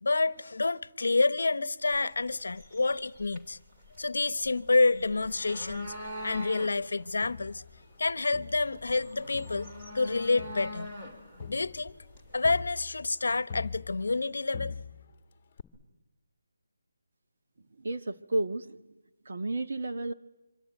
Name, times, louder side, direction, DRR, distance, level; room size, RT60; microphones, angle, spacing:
voice 1, 0.0-3.6 4.0-6.0 6.2-7.6 8.0-9.7 9.9-10.9 11.5-11.9 12.3-14.7, left 3 dB, 65° left, 1.0 m, -28 dB
sound 1, 1.9-12.7, left 1 dB, 15° right, 2.5 m, -45 dB
Crowd, 7.2-9.0 9.3-14.3 14.5-15.2 15.6-15.7, left 5 dB, 15° left, 1.7 m, -44 dB
voice 2, 17.8-18.8 19.2-20.1, right 2 dB, 45° right, 1.5 m, -32 dB
25.5 x 25.0 x 9.2 m
hypercardioid pair, 175°, 0 cm